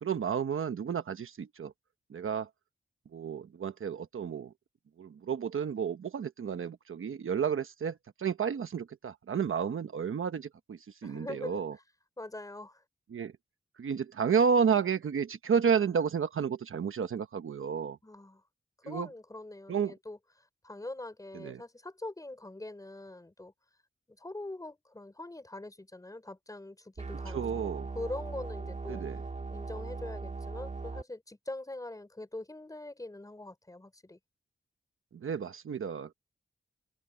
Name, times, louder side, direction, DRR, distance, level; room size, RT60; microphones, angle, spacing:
voice 1, 0.0-1.7 2.1-2.5 3.1-4.5 5.0-11.7 13.1-13.3 13.8-18.0 18.9-19.1 19.7-19.9 21.3-21.6 27.3-27.9 28.9-29.2 35.1-36.1, right 7 dB, 80° right, 1.1 m, -31 dB
voice 2, 11.0-11.8 12.2-12.8 18.0-18.4 18.8-23.5 24.1-29.0 29.5-34.2, left 2 dB, 15° left, 4.9 m, -43 dB
sound 1, 27.0-31.0, right 3 dB, 35° right, 2.3 m, -39 dB
wide cardioid pair, 175°, 21 cm